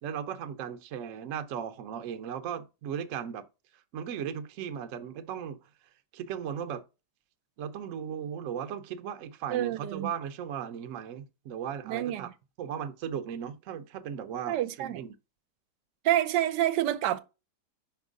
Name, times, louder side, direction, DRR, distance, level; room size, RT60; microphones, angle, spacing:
voice 1, 0.0-3.4 3.9-5.6 6.1-6.8 7.6-12.3 12.6-15.1, right 8 dB, 60° right, 0.9 m, -37 dB
voice 2, 9.5-10.1 11.9-12.2 14.5-15.0 16.0-17.2, right 13 dB, 85° right, 1.2 m, -28 dB
5.4 x 3.6 x 5.1 m
omnidirectional pair, 1.8 m